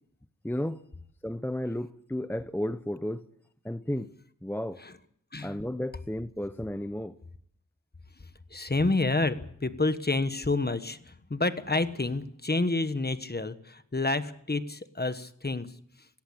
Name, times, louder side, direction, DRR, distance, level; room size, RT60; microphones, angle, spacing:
voice 1, 0.4-0.8 1.2-3.2 3.6-4.1 4.4-4.8 5.4-7.2, left 1 dB, 5° left, 0.8 m, -33 dB
voice 2, 8.5-15.7, left 2 dB, 30° left, 1.4 m, -29 dB
18.0 x 17.5 x 8.6 m
wide cardioid pair, 75°, 33 cm